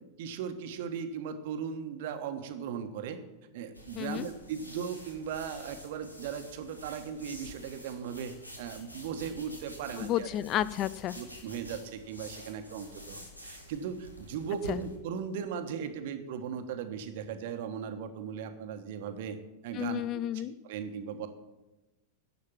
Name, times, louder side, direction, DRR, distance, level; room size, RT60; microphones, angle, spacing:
voice 1, 0.0-3.2 3.5-10.3 11.2-19.4 19.6-20.0 20.6-21.3, right 7 dB, 50° right, 8 dB, 1.2 m, -37 dB
sound 1, 3.7-15.0, equal, 85° left, 2.0 m, -48 dB
voice 2, 10.0-11.2 14.7-14.8 19.7-20.5, left 12 dB, 35° left, 17 dB, 0.4 m, -31 dB
11.5 x 7.2 x 7.3 m, 1.1 s
figure-of-eight pair, 90°, 0 cm